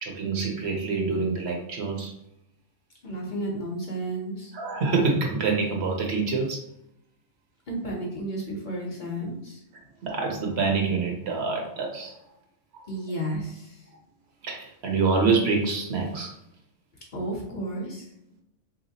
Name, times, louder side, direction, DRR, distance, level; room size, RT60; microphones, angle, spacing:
voice 1, 0.0-2.1 4.5-6.6 10.0-12.1 14.4-16.3, right 4 dB, 65° right, 1 dB, 0.9 m, -26 dB
voice 2, 3.0-4.5 7.7-9.6 12.9-13.8 17.1-18.1, right 1 dB, 45° left, -2 dB, 0.8 m, -32 dB
3.3 x 2.8 x 2.7 m, 0.79 s
omnidirectional pair, 1.3 m